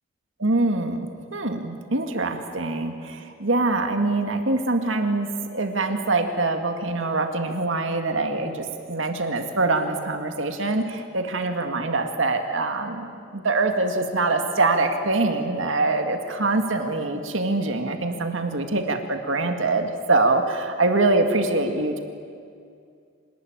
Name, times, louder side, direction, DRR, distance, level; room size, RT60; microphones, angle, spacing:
voice 1, 0.4-22.0, right 2 dB, 75° right, 5 dB, 2.1 m, -24 dB
26.0 x 20.0 x 9.2 m, 2.3 s
head